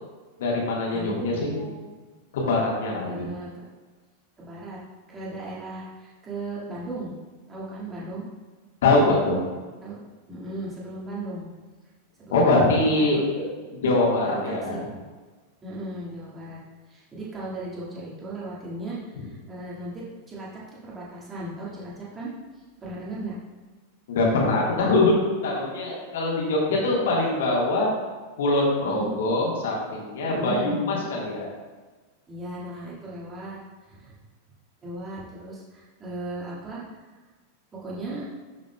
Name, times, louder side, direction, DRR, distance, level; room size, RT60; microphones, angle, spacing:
voice 1, 0.4-1.6 2.3-3.3 8.8-9.4 12.3-14.8 24.1-25.1 25.4-27.9 28.4-31.5, left 2 dB, 60° left, -3 dB, 1.5 m, -23 dB
voice 2, 0.9-1.8 3.0-3.7 4.4-4.8 5.1-7.2 7.5-8.2 9.8-10.0 10.3-11.5 12.2-13.2 14.2-14.8 15.6-16.6 16.9-22.3 22.8-23.4 28.8-29.1 30.2-30.8 32.3-34.1 34.8-36.8 37.7-38.3, right 2 dB, 20° right, -7 dB, 1.9 m, -36 dB
11.0 x 3.9 x 2.2 m, 1.3 s
figure-of-eight pair, 90°, 0 cm